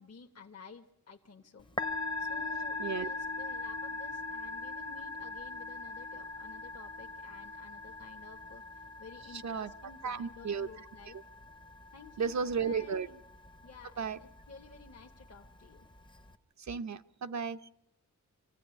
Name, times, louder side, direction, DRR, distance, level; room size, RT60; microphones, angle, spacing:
voice 1, 0.0-1.7 2.2-11.2 11.9-13.2 13.6-15.9, left 4 dB, 55° left, 2 dB, 1.3 m, -53 dB
Musical instrument, 1.6-16.3, left 3 dB, 15° left, 0.8 m, -41 dB
voice 2, 10.0-10.7 12.2-13.1 14.0-14.2 16.7-17.7, right 6 dB, 65° right, 10 dB, 0.8 m, -34 dB
26.5 x 15.5 x 9.8 m, 0.84 s
wide cardioid pair, 150°, 30 cm